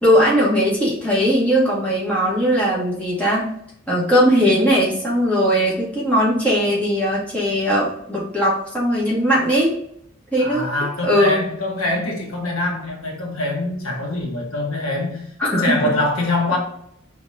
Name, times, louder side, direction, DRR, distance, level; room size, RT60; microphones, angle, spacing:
voice 1, 0.0-3.5 3.9-9.7 10.3-10.7 11.0-11.4 15.4-15.8, equal, 5° left, 1.8 m, -19 dB
voice 2, 10.4-16.6, left 2 dB, 85° left, 1.4 m, -24 dB
4.7 x 4.0 x 2.7 m
head